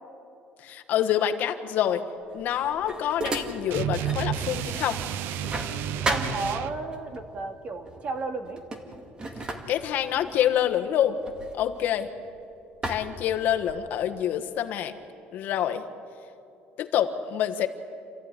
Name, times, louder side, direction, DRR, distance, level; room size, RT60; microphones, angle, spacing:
voice 1, 0.6-2.0 2.3-5.0 9.7-11.2 11.5-12.1 12.8-14.9 15.3-15.8 16.8-17.7, left 10 dB, 60° left, 6 dB, 1.4 m, -26 dB
sound 1, 2.3-4.3 4.7-7.0 7.9-8.1 8.4-12.3 12.8-14.0, right 2 dB, 25° right, 2.2 m, -35 dB
sound 2, 3.7-6.8, right 10 dB, 80° right, 0.8 m, -31 dB
voice 2, 6.1-8.6, right 3 dB, 40° right, 5 dB, 2.3 m, -33 dB
28.0 x 15.0 x 9.9 m, 2.7 s
cardioid pair, 150°, 4 cm